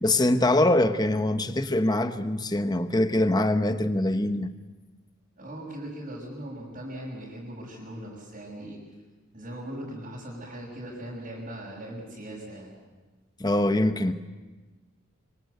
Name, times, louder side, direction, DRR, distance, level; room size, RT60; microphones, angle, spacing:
voice 1, 0.0-4.5 13.4-14.1, left 1 dB, 20° left, 1.1 m, -23 dB
voice 2, 5.4-8.8 9.3-12.8, right 1 dB, 40° right, 6.3 m, -39 dB
26.0 x 25.0 x 8.2 m
head